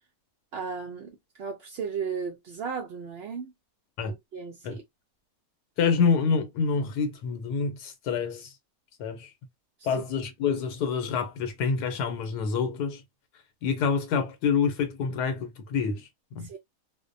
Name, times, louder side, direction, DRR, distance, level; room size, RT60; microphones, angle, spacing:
voice 1, 0.5-3.5 4.0-4.8 10.0-10.1 16.4-16.6, right 6 dB, 80° right, 0.5 m, -35 dB
voice 2, 5.8-8.5 9.0-9.3 9.8-13.0 13.6-16.5, left 5 dB, 90° left, 1.2 m, -27 dB
2.5 x 2.1 x 2.5 m
omnidirectional pair, 1.7 m